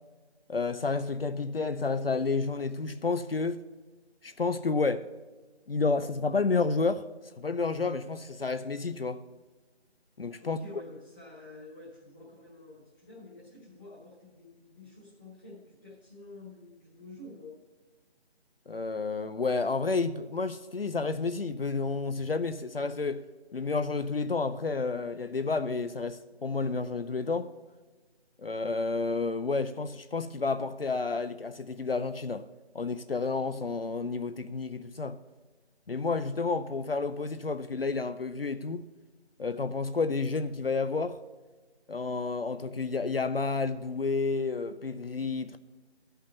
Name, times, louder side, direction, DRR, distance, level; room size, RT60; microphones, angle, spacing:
voice 1, 0.5-3.6 4.2-5.1 5.7-7.0 7.4-9.2 10.2-10.6 18.7-23.3 23.5-27.5 28.4-32.5 32.7-35.2 35.9-38.9 39.4-41.2 41.9-45.6, left 4 dB, 60° left, 0.6 m, -30 dB
voice 2, 10.4-17.5, left 2 dB, 15° left, 1.5 m, -49 dB
11.5 x 5.6 x 6.8 m
figure-of-eight pair, 180°, 33 cm